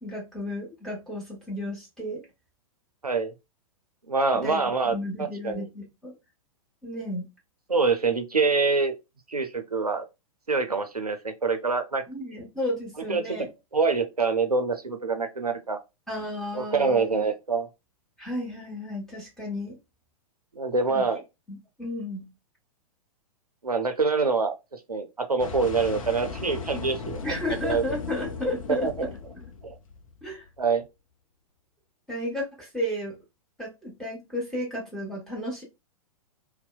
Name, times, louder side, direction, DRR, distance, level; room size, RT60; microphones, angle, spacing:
voice 1, 0.0-2.2 4.3-6.1 6.8-7.3 12.1-13.5 16.1-17.3 18.2-19.8 20.9-21.1 21.5-22.3 27.2-29.1 29.4-29.5 30.2-30.4 32.1-33.2 33.6-35.6, left 1 dB, ahead, 1.2 m, -33 dB
voice 2, 4.1-5.6 7.7-8.9 9.3-10.1 10.5-12.0 13.1-13.5 13.7-15.8 16.5-17.7 20.6-21.2 23.6-24.5 24.9-27.3 27.6-27.8 28.7-29.1 29.6-29.8 30.6-30.8, right 4 dB, 90° right, 0.4 m, -25 dB
sound 1, 25.4-30.5, left 5 dB, 60° left, 0.5 m, -37 dB
2.6 x 2.0 x 2.3 m
figure-of-eight pair, 105°, 19 cm